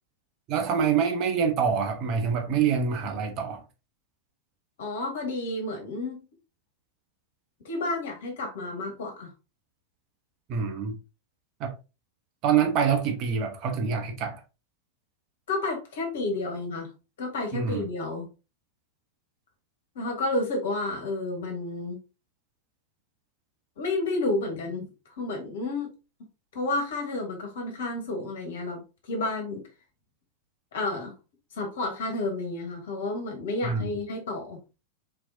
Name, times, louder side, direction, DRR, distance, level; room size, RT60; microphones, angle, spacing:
voice 1, 0.5-3.6 10.5-11.0 11.6-11.7 12.4-14.4 17.5-17.9 33.6-33.9, right 6 dB, 40° right, 1.1 m, -26 dB
voice 2, 4.8-6.2 7.7-9.3 15.5-16.9 17.2-18.3 20.0-22.0 23.8-24.9 25.2-25.9 26.5-28.8 29.1-29.6 30.7-31.1 31.5-34.6, left 2 dB, 60° left, 1.8 m, -31 dB
4.4 x 4.3 x 2.8 m
figure-of-eight pair, 90°, 0 cm